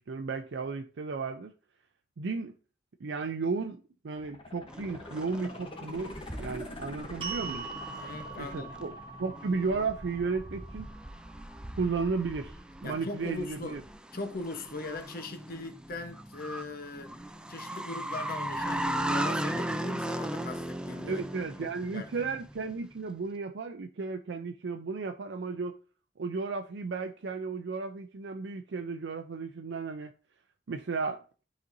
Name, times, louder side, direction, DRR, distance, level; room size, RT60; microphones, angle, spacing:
voice 1, 0.0-1.5 2.2-2.5 3.0-7.7 8.4-10.9 11.8-13.8 21.1-25.7 26.2-30.1 30.7-31.2, right 4 dB, 85° right, 0.5 m, -34 dB
sound 1, 4.1-11.1 11.5-11.6, left 1 dB, 30° left, 0.9 m, -46 dB
sound 2, 4.7-22.7, right 1 dB, 5° right, 0.4 m, -38 dB
sound 3, 7.2-13.4, right 5 dB, 30° right, 1.0 m, -44 dB
voice 2, 7.9-8.7 12.8-13.8 14.1-17.1 17.5-21.3 21.6-22.1, left 2 dB, 55° left, 1.0 m, -40 dB
12.0 x 4.2 x 2.6 m
head